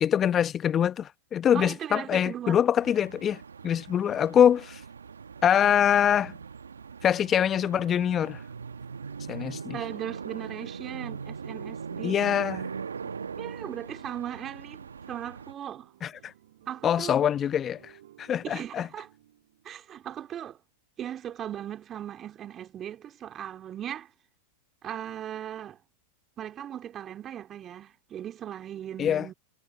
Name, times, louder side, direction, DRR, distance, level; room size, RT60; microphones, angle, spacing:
voice 1, 0.0-3.4 3.6-4.8 5.4-6.3 7.0-8.4 9.3-9.8 12.0-12.7 16.0-16.3 16.8-17.9 18.2-18.9 29.0-29.3, left 9 dB, 30° left, 0.9 m, -24 dB
voice 2, 1.5-2.6 9.7-12.2 13.0-15.9 16.7-17.1 18.4-19.1 19.6-20.6 21.0-24.1 24.8-25.8 26.4-29.3, right 10 dB, 30° right, 2.9 m, -38 dB
sound 1, 2.8-15.5, right 5 dB, 85° right, 1.0 m, -40 dB
sound 2, 11.4-20.1, right 13 dB, 65° right, 6.4 m, -58 dB
hypercardioid pair, 100°, 0 cm